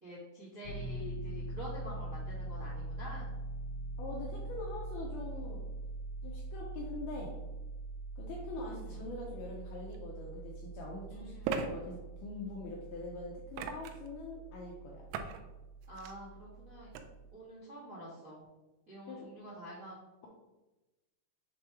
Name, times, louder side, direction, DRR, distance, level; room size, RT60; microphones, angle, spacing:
voice 1, 0.0-3.3 8.5-9.0 11.1-11.7 15.9-16.9 17.3-18.4 18.9-20.0, equal, 75° right, -9 dB, 0.7 m, -47 dB
Piano, 0.6-17.3, right 2 dB, 65° left, 1.9 m, -43 dB
voice 2, 4.0-5.6 6.2-7.3 8.2-15.0 19.1-19.2, left 3 dB, 80° left, -2 dB, 2.2 m, -44 dB
sound 1, 9.9-10.0 11.4-11.7 13.5-14.1 15.1-15.4 15.8-16.1 16.9-17.0, right 6 dB, 90° right, 3.0 m, -37 dB
7.0 x 3.1 x 4.7 m, 1.1 s
omnidirectional pair, 5.3 m